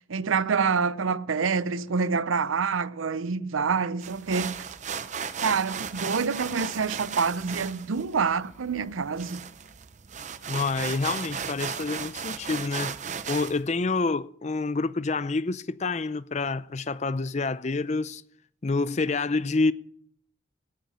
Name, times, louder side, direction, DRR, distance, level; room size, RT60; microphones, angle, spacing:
voice 1, 0.1-4.7 5.4-9.4, right 5 dB, 85° right, 0.6 m, -27 dB
sound 1, 4.0-13.6, right 6 dB, 35° right, 0.6 m, -36 dB
voice 2, 10.5-13.0 13.3-18.2 18.6-19.7, left 3 dB, 35° left, 0.5 m, -27 dB
17.0 x 9.8 x 5.6 m
head